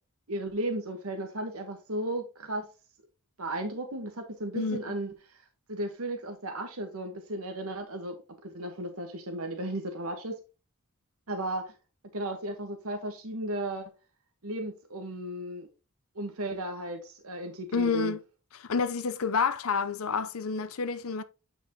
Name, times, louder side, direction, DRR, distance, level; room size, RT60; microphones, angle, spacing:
voice 1, 0.3-2.7 3.4-8.2 8.4-10.4 11.3-11.7 12.1-13.9 14.4-15.7 16.1-18.1, right 1 dB, 80° right, 1.3 m, -35 dB
voice 2, 17.7-18.2 18.6-21.2, left 5 dB, 70° left, 0.7 m, -29 dB
8.7 x 5.3 x 2.9 m
head